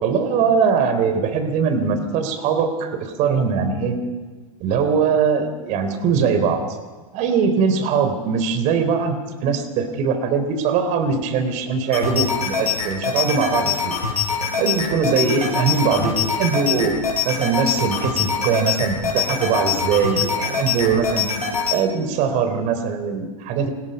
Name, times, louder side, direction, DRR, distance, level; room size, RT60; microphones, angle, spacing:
voice 1, 0.0-4.0 4.6-6.6 7.1-9.2 9.4-14.0 14.6-17.0 17.2-21.3 21.7-23.7, right 6 dB, 40° right, 9 dB, 3.6 m, -21 dB
sound 1, 11.9-21.8, left 6 dB, 85° left, 6.6 m, -24 dB
28.0 x 20.0 x 5.4 m, 1.3 s
hypercardioid pair, 100°, 19 cm